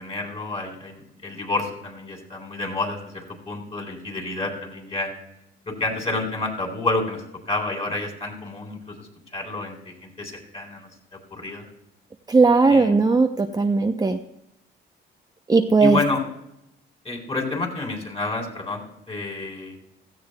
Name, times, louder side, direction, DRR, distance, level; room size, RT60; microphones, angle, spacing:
voice 1, 0.0-5.1 5.7-10.9 11.3-11.7 12.7-12.9 15.8-16.2 17.0-19.8, left 2 dB, 30° left, 0 dB, 3.8 m, -29 dB
voice 2, 12.3-14.2 15.5-16.0, right 4 dB, 20° right, 4 dB, 0.7 m, -18 dB
16.5 x 14.0 x 2.3 m, 0.82 s
cardioid pair, 90°, 20 cm